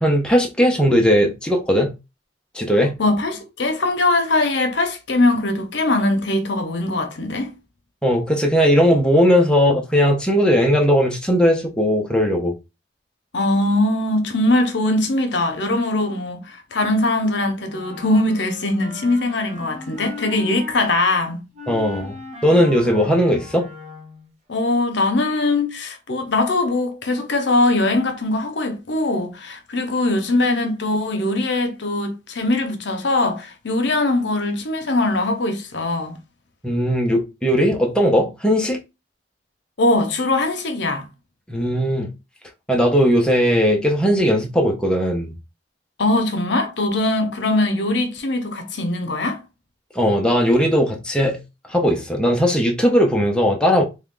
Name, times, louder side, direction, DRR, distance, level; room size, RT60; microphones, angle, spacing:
voice 1, 0.0-1.9 2.5-2.9 8.0-12.5 21.7-22.2 22.4-23.7 36.6-38.8 41.5-42.1 42.7-45.3 49.9-51.4 51.7-53.8, equal, 5° left, 0.6 m, -18 dB
voice 2, 3.0-7.5 13.3-21.4 24.5-36.2 39.8-41.1 46.0-49.4, left 2 dB, 65° left, 0.8 m, -21 dB
Wind instrument woodwind instrument, 17.6-20.9 21.5-24.3, left 1 dB, 40° right, 1.2 m, -37 dB
3.5 x 2.3 x 3.6 m
head